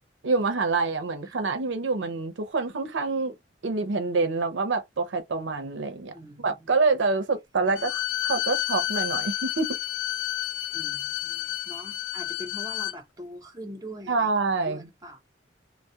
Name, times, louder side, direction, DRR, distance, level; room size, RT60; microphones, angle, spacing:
voice 1, 0.2-3.3 3.6-9.8 14.1-14.9, right 3 dB, 80° right, 0.5 m, -26 dB
voice 2, 6.1-6.5 10.7-14.3 14.6-15.2, equal, 20° right, 0.6 m, -42 dB
Bowed string instrument, 7.7-13.0, left 13 dB, 80° left, 0.4 m, -30 dB
2.2 x 2.0 x 2.7 m
head